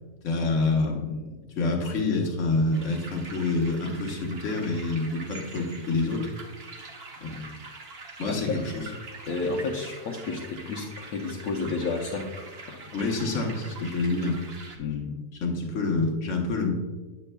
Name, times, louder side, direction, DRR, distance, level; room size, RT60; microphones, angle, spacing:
voice 1, 0.2-6.3 7.2-7.5 8.2-8.8 12.9-14.4 15.1-16.7, left 3 dB, 55° left, 0 dB, 1.3 m, -27 dB
sound 1, 2.7-14.8, right 3 dB, 45° right, 1.0 m, -44 dB
voice 2, 8.3-8.6 9.3-12.3 12.7-12.8 14.8-15.2, left 4 dB, 70° left, -2 dB, 1.1 m, -31 dB
8.3 x 8.2 x 2.2 m, 1.3 s
omnidirectional pair, 1.6 m